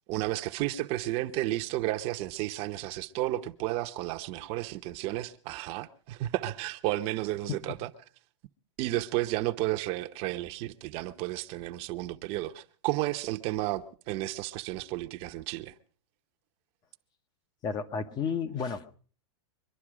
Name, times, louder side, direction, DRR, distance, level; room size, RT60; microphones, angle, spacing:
voice 1, 0.1-7.9 8.8-15.7, right 16 dB, 40° right, 0.9 m, -32 dB
voice 2, 17.6-19.0, left 6 dB, 25° left, 1.0 m, -32 dB
23.5 x 11.5 x 4.9 m
supercardioid pair, 140°, 15 cm